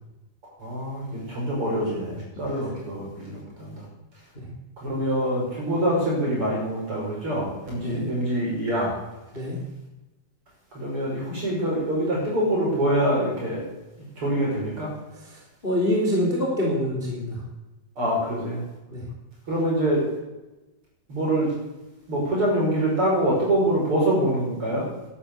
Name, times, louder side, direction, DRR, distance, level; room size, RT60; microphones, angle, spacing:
voice 1, 0.6-3.7 4.8-8.9 10.7-13.6 14.2-14.9 18.0-18.6 19.5-20.0 21.1-21.5 22.1-24.8, right 1 dB, 35° right, -3 dB, 6.9 m, -25 dB
voice 2, 7.8-8.1 9.3-9.6 15.2-17.4 18.9-19.0, left 1 dB, 15° left, -2 dB, 2.9 m, -26 dB
12.0 x 11.5 x 8.3 m, 1.0 s
omnidirectional pair, 4.3 m